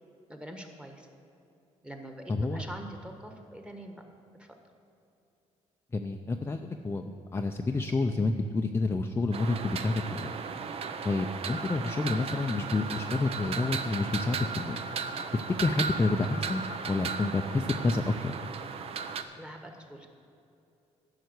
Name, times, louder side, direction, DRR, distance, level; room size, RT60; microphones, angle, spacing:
voice 1, 0.3-1.1 1.8-4.0 4.4-4.6 15.3-15.4 19.4-20.1, right 1 dB, 10° right, 4 dB, 1.4 m, -44 dB
voice 2, 2.3-2.6 5.9-10.3 11.0-14.8 15.3-18.3, left 3 dB, 20° left, 4 dB, 0.5 m, -29 dB
sound 1, 9.3-19.2, right 5 dB, 55° right, 0.7 m, -36 dB
11.0 x 5.8 x 8.0 m, 2.7 s
cardioid pair, 95°, 12 cm